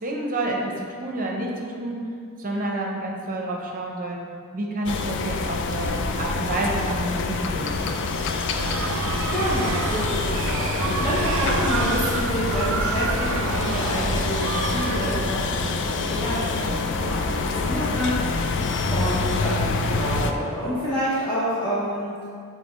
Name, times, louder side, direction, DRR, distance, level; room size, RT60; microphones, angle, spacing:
voice 1, 0.0-2.1 2.4-4.2 4.5-8.0, right 1 dB, 40° right, -1 dB, 0.8 m, -29 dB
sound 1, 4.9-20.3, left 3 dB, 55° left, 0.4 m, -26 dB
sound 2, 8.6-15.3, right 5 dB, 60° right, 0.3 m, -29 dB
voice 2, 9.3-18.1 18.6-22.1, equal, 20° left, -11 dB, 0.9 m, -28 dB
7.5 x 4.0 x 3.1 m, 2.2 s
head